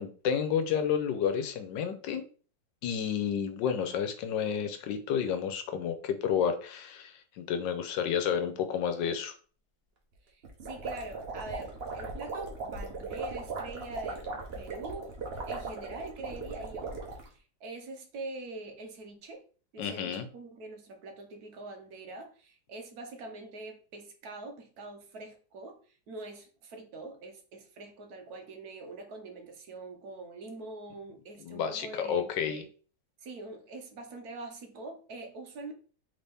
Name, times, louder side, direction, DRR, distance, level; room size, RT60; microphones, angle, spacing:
voice 1, 0.0-2.2 2.8-9.3 19.8-20.3 31.4-32.6, left 7 dB, 85° left, 8 dB, 1.4 m, -31 dB
voice 2, 10.2-15.2 15.5-19.4 19.7-32.7 33.2-35.7, right 2 dB, 65° right, 5 dB, 1.2 m, -44 dB
sound 1, 10.4-17.3, right 3 dB, 40° right, 1.0 m, -38 dB
4.1 x 3.6 x 3.4 m, 0.40 s
omnidirectional pair, 1.9 m